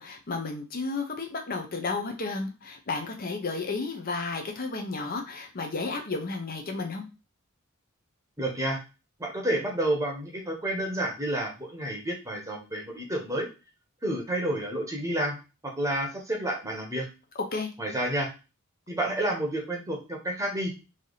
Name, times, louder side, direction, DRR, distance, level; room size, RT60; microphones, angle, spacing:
voice 1, 0.0-7.0 17.5-17.7, left 3 dB, 45° left, 3 dB, 0.6 m, -32 dB
voice 2, 8.4-8.8 9.2-13.5 14.0-15.4 15.8-17.0 17.8-18.3 18.9-20.7, right 1 dB, 15° right, 0 dB, 0.9 m, -30 dB
3.3 x 2.7 x 3.9 m, 0.30 s
head